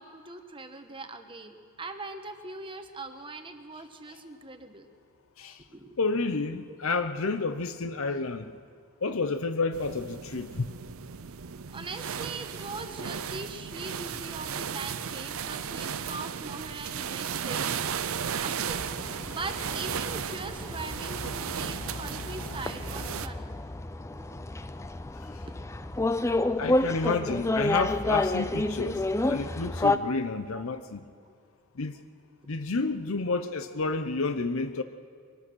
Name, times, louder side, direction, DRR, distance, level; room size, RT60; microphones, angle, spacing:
voice 1, 0.0-4.9 5.7-6.0 6.7-6.8 11.7-18.9 19.3-23.5 24.2-24.5 25.3-25.4 30.5-30.8 31.2-31.3 33.3-33.9, right 3 dB, 25° right, 7 dB, 1.2 m, -41 dB
voice 2, 6.0-8.5 9.0-10.7 26.6-31.0 31.8-32.0 32.5-34.8, left 3 dB, 70° left, 9 dB, 0.8 m, -30 dB
sound 1, 9.7-23.3, right 7 dB, 70° right, 0.6 m, -35 dB
sound 2, 18.8-30.0, left 2 dB, 15° left, 0.5 m, -30 dB
23.5 x 18.5 x 6.3 m, 2.3 s
head